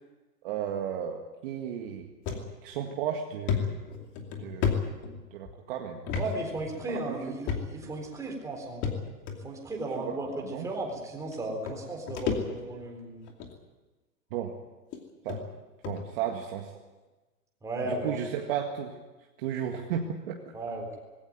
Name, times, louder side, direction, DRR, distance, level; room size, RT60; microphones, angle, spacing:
voice 1, 0.4-2.1 2.6-3.8 4.4-4.9 5.3-6.1 6.9-7.2 10.0-10.7 14.3-14.5 15.2-15.4 15.9-16.7 17.9-19.0 19.4-20.4, right 9 dB, 35° right, 2 dB, 1.9 m, -34 dB
sound 1, 2.3-2.4 2.9-3.0 3.5-5.5 6.1-6.3 6.6-6.7 7.5-7.9 8.8-9.4 10.2-10.3 11.3-11.4 11.7-12.8 13.3-13.6 14.3-14.4 14.9-15.0 15.3-15.4 15.8-16.0, left 6 dB, 25° left, 2.6 m, -31 dB
voice 2, 6.2-8.8 9.4-13.2 17.6-18.2 20.5-21.0, right 2 dB, 5° right, 0 dB, 3.9 m, -35 dB
20.5 x 17.0 x 9.4 m, 1.2 s
hypercardioid pair, 155°, 47 cm